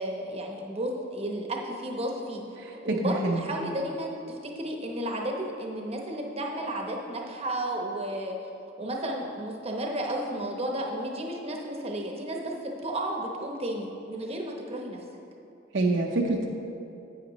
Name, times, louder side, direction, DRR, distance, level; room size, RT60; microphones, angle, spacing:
voice 1, 0.0-2.4 2.8-8.4 8.8-12.5 12.8-15.0, right 1 dB, 30° right, 0 dB, 0.9 m, -33 dB
voice 2, 2.6-3.5 15.7-16.5, right 2 dB, 65° right, 1 dB, 0.7 m, -26 dB
10.0 x 8.2 x 3.0 m, 2.7 s
head